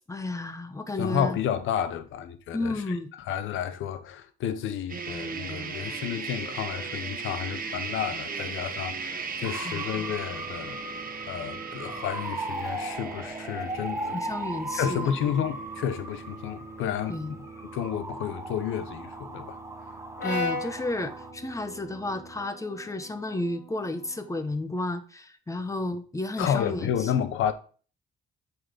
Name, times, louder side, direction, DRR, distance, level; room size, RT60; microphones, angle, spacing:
voice 1, 0.1-1.4 2.5-3.1 9.6-9.9 14.1-15.1 17.1-17.4 20.2-27.1, left 2 dB, 15° left, 1.1 m, -32 dB
voice 2, 1.0-2.8 3.3-10.8 11.3-14.2 14.7-17.2 17.7-19.6 26.4-27.5, left 9 dB, 85° left, 0.9 m, -31 dB
sound 1, 4.9-22.4, right 5 dB, 45° right, 1.2 m, -39 dB
sound 2, 9.4-21.3, right 2 dB, 15° right, 1.0 m, -38 dB
Brass instrument, 20.2-24.4, left 2 dB, 60° left, 2.8 m, -37 dB
7.8 x 4.2 x 5.1 m
cardioid pair, 90°, 20 cm